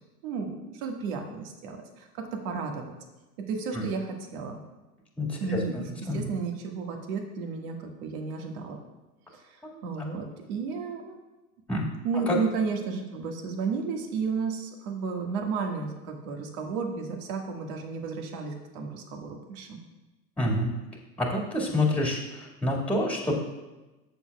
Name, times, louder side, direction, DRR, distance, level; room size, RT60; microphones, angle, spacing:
voice 1, 0.2-2.8 3.4-4.6 5.4-8.8 9.3-11.2 12.0-19.8, right 5 dB, 60° right, 2 dB, 1.8 m, -33 dB
voice 2, 5.2-5.6 6.1-6.2 9.6-9.8 11.7-11.9 12.3-12.4 20.4-20.7 21.2-23.3, left 1 dB, 5° left, -2 dB, 1.8 m, -27 dB
14.0 x 7.0 x 2.3 m, 1.1 s
hypercardioid pair, 95°, 47 cm